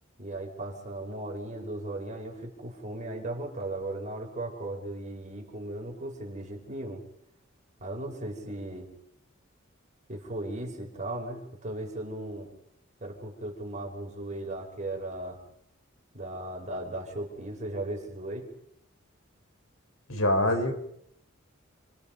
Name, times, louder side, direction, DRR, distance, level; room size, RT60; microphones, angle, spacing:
voice 1, 0.2-7.0 7.8-8.9 10.1-12.5 13.0-15.4 16.1-18.5, right 1 dB, 35° right, 0 dB, 5.5 m, -37 dB
voice 2, 20.1-20.7, left 1 dB, 85° left, 5 dB, 5.0 m, -24 dB
29.5 x 24.0 x 5.4 m, 0.73 s
head